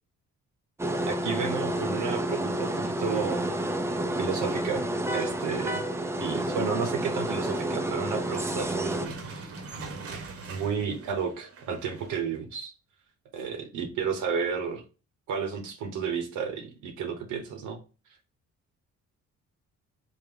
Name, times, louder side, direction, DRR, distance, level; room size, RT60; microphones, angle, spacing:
sound 1, 0.8-9.1, right 1 dB, 10° right, 0.3 m, -30 dB
voice 1, 1.0-3.5 4.2-5.9 6.2-9.6 10.5-12.7 13.3-14.8 15.3-17.8, right 6 dB, 80° right, 3 dB, 0.9 m, -32 dB
sound 2, 8.2-12.4, right 3 dB, 50° right, 0.8 m, -42 dB
3.4 x 2.1 x 3.5 m, 0.33 s
cardioid pair, 90°, 30 cm